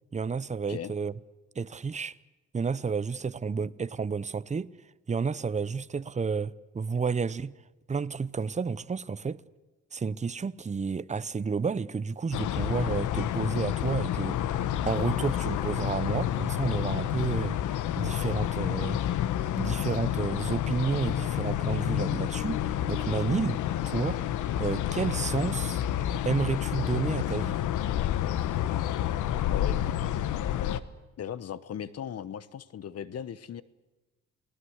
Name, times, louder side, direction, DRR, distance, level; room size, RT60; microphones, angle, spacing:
voice 1, 0.1-1.1 1.6-2.2 2.5-4.7 5.1-7.5 7.9-9.4 9.9-14.4 14.8-19.0 19.6-23.6 23.9-24.2 24.6-25.8 26.2-27.6, right 5 dB, 25° right, 0.8 m, -31 dB
sound 1, 12.3-30.8, left 11 dB, 80° left, 1.1 m, -29 dB
voice 2, 29.5-30.1 31.2-33.6, left 9 dB, 55° left, 1.0 m, -38 dB
29.0 x 19.0 x 8.1 m
cardioid pair, 90°, 30 cm